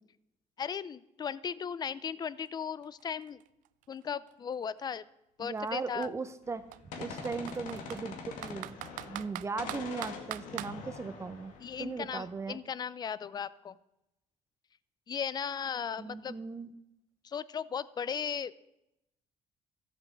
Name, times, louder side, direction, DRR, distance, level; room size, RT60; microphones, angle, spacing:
voice 1, 0.6-3.4 3.9-5.0 5.4-6.1 11.6-13.8 15.1-16.4 17.2-18.5, left 7 dB, 30° left, 18 dB, 0.5 m, -36 dB
Computer keyboard, 2.5-2.6 2.8-4.8 5.6-5.7 6.0-6.1 6.7-8.0 8.4-10.7, right 16 dB, 85° right, 0.4 m, -42 dB
voice 2, 5.4-6.6 7.0-8.8 9.1-12.6 16.0-16.7, right 4 dB, 20° right, 12 dB, 0.6 m, -38 dB
Gunshot gunfire, 6.5-9.3 9.6-12.3, left 5 dB, 85° left, 2.1 m, -44 dB
14.0 x 8.1 x 7.3 m, 0.86 s
cardioid pair, 140°, 13 cm